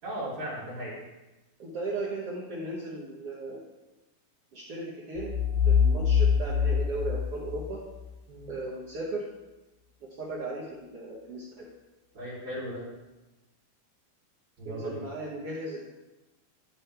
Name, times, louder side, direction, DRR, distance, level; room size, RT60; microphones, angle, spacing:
voice 1, 0.0-1.0 8.3-8.5 12.1-12.8 14.6-15.0, equal, 45° right, -11 dB, 4.1 m, -36 dB
voice 2, 1.6-3.6 4.5-5.4 5.6-7.8 8.5-9.2 10.2-11.7 14.6-15.9, right 2 dB, 70° right, -7 dB, 1.4 m, -36 dB
sound 1, 5.2-8.0, left 6 dB, 90° left, 5.0 m, -25 dB
13.0 x 4.5 x 3.4 m, 1.1 s
omnidirectional pair, 4.4 m